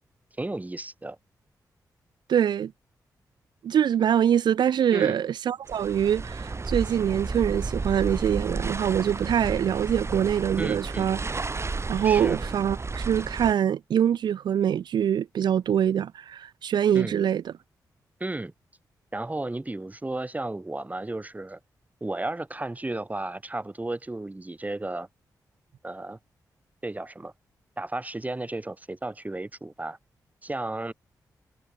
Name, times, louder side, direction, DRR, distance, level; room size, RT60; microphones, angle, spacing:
voice 1, 0.4-1.2 4.9-5.2 10.6-11.1 12.0-12.4 16.9-17.2 18.2-18.5 19.1-21.6 22.0-25.1 25.8-26.2 26.8-27.3 27.8-30.0 30.4-30.9, right 2 dB, 20° right, 2.0 m, -33 dB
voice 2, 2.3-2.7 3.6-11.2 11.9-17.5, right 9 dB, 80° right, 0.6 m, -24 dB
sound 1, 5.7-13.5, right 3 dB, 40° right, 1.7 m, -32 dB
cardioid pair, 55°, 7 cm